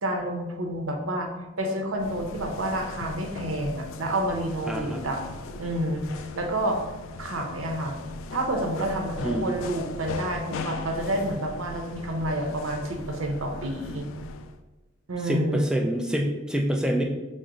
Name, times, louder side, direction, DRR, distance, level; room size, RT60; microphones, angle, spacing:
voice 1, 0.0-1.3 1.6-5.2 5.6-6.8 7.2-8.0 8.3-14.1 15.1-15.7, right 1 dB, 85° right, 3 dB, 0.7 m, -29 dB
sound 1, 2.0-14.6, left 3 dB, 75° left, 0.3 m, -39 dB
voice 2, 4.7-5.0 9.2-9.5 15.2-17.0, right 1 dB, 5° right, 1 dB, 0.3 m, -26 dB
6.0 x 2.0 x 3.8 m, 1.1 s
head